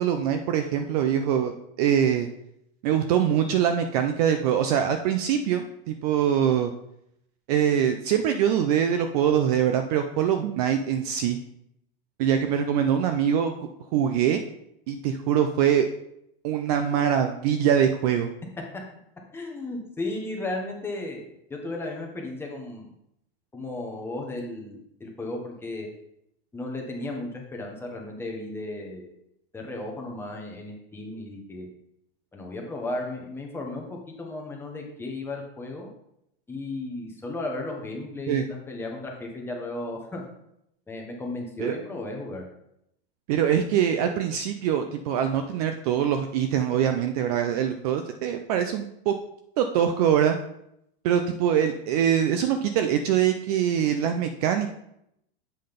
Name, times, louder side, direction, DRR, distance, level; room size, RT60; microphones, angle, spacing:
voice 1, 0.0-1.5 1.8-2.3 2.8-6.7 7.5-11.4 12.2-13.5 13.9-14.4 14.9-15.9 16.4-18.3 38.3-38.4 41.6-41.7 43.3-49.1 49.6-50.4 51.0-54.7, right 9 dB, 40° right, 7 dB, 0.4 m, -23 dB
voice 2, 19.3-21.2 21.5-22.9 23.5-25.9 26.5-29.1 29.5-31.7 32.3-35.9 36.5-40.2 40.9-42.5, left 2 dB, 5° left, 0 dB, 0.9 m, -35 dB
7.6 x 3.8 x 5.1 m, 0.78 s
supercardioid pair, 160°, 32 cm